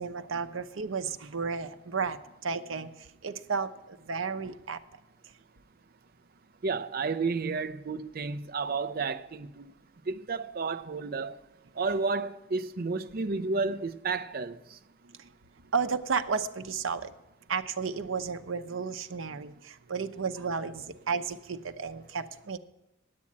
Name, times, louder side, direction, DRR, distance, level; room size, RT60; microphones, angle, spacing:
voice 1, 0.0-2.2 2.4-2.9 3.2-3.7 4.1-4.8 15.7-17.1 17.5-22.6, right 5 dB, 85° right, 0.7 m, -32 dB
voice 2, 6.6-9.7 10.1-11.4 11.8-14.8, right 4 dB, 50° right, 0.5 m, -31 dB
9.7 x 8.5 x 8.5 m
head